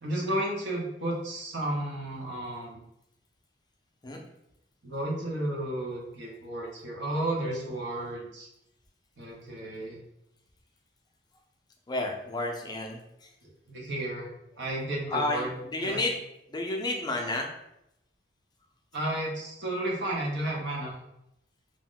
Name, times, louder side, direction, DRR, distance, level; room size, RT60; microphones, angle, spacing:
voice 1, 0.0-2.8 4.8-8.5 9.2-10.0 13.7-14.3 14.6-15.5 15.8-16.0 18.9-20.9, right 1 dB, 75° right, -2 dB, 0.8 m, -32 dB
voice 2, 11.9-13.3 15.1-16.2 16.5-17.5, left 2 dB, 25° left, 1 dB, 0.4 m, -31 dB
2.5 x 2.1 x 3.7 m, 0.83 s
head